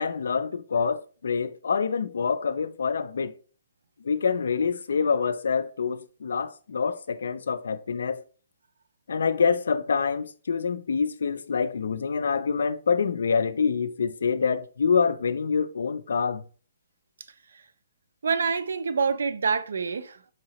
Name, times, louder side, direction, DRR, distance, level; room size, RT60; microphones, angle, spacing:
voice 1, 0.0-3.3 4.0-8.2 9.1-16.4, left 5 dB, 80° left, 0.3 m, -26 dB
voice 2, 18.2-20.3, right 5 dB, 85° right, 0.4 m, -27 dB
4.9 x 2.8 x 2.9 m
hypercardioid pair, 180°, 0 cm